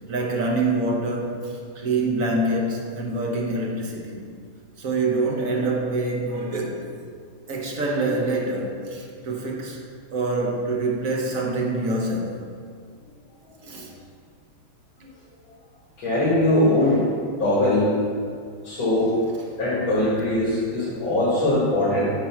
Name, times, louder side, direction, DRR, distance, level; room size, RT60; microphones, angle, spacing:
voice 1, 0.1-4.3 4.8-7.1 7.5-9.8 10.1-12.4 13.6-13.9, right 2 dB, 50° right, -1 dB, 1.3 m, -26 dB
voice 2, 16.0-17.9 18.6-19.1 19.6-22.1, left 1 dB, 75° left, -8 dB, 2.5 m, -21 dB
9.1 x 4.0 x 5.7 m, 2.1 s
omnidirectional pair, 2.1 m